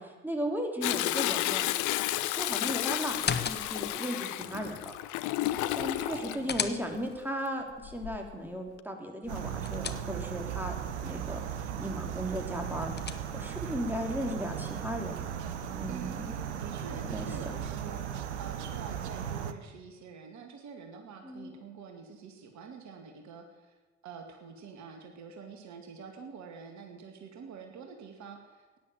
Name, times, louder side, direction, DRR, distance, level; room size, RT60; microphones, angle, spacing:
voice 1, 0.0-1.6 2.3-4.9 5.7-10.7 11.0-11.4 11.8-12.9 13.3-15.3 15.7-16.3 17.0-17.3 21.2-21.6, equal, 5° right, 2 dB, 3.5 m, -36 dB
Toilet flush, 0.8-6.4 7.8-8.3 8.8-8.9, left 15 dB, 60° left, 0.8 m, -31 dB
sound 1, 3.1-4.0 6.0-7.3 9.2-10.5 12.5-13.6, left 6 dB, 30° left, 1.2 m, -37 dB
voice 2, 6.1-6.7 15.9-23.8 24.0-28.8, right 5 dB, 55° right, 4 dB, 2.2 m, -46 dB
sound 2, 9.3-19.5, right 9 dB, 80° right, 0.9 m, -37 dB
17.0 x 10.5 x 7.7 m, 1.2 s
figure-of-eight pair, 50°, 34 cm